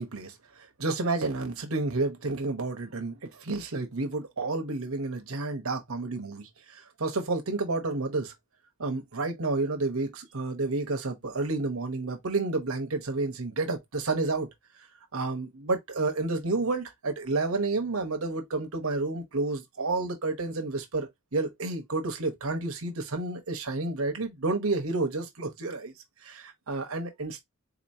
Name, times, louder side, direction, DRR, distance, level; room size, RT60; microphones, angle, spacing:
voice 1, 0.0-8.3 8.8-14.5 15.1-25.9 26.2-27.4, right 3 dB, 85° right, 1.0 m, -30 dB
4.0 x 3.0 x 2.7 m
head